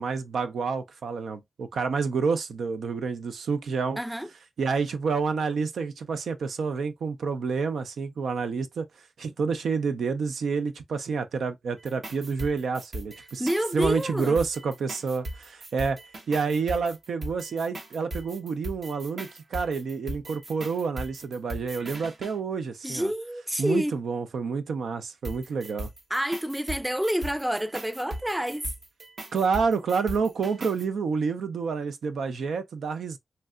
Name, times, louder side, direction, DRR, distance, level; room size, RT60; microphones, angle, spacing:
voice 1, 0.0-4.0 4.6-8.9 9.2-16.0 16.3-23.1 23.6-25.9 29.3-33.2, right 5 dB, 90° right, 0.4 m, -29 dB
voice 2, 4.0-4.3 13.4-14.4 21.8-22.0 22.8-24.0 26.1-28.7, equal, 10° right, 0.3 m, -28 dB
sound 1, 11.8-22.3 25.2-30.8, right 1 dB, 70° right, 0.9 m, -39 dB
3.2 x 2.8 x 2.3 m
cardioid pair, 45°, 0 cm